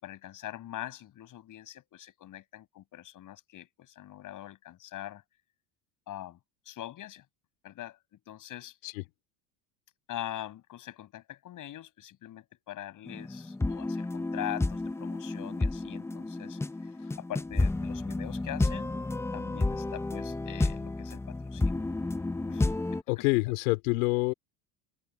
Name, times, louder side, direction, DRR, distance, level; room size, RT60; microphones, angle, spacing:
voice 1, 0.0-5.2 6.1-6.4 6.7-7.2 7.6-8.0 8.3-8.8 10.1-16.9 17.2-19.0 19.3-21.9 22.5-23.3, left 13 dB, 50° left, 7.3 m, -43 dB
sound 1, 13.1-23.0, left 2 dB, 5° left, 0.7 m, -31 dB
voice 2, 23.1-24.3, left 25 dB, 80° left, 3.6 m, -27 dB
open air
supercardioid pair, 110°, 41 cm